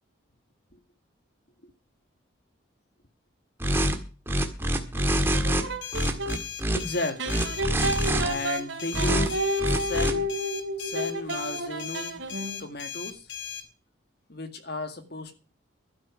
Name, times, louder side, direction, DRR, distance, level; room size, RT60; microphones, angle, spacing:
sound 1, 3.6-4.0 4.3-5.6 5.9-6.8 7.3-8.3 8.9-9.3 9.6-10.1, right 1 dB, 10° right, 1.7 m, -25 dB
sound 2, 5.0-6.4 7.2-12.6, equal, 70° right, 2.5 m, -31 dB
sound 3, 5.8-13.6, left 8 dB, 70° left, 2.5 m, -38 dB
voice 1, 6.7-7.6 8.2-10.3 10.8-13.3 14.3-15.4, left 2 dB, 55° left, 2.1 m, -34 dB
12.5 x 10.0 x 6.4 m
head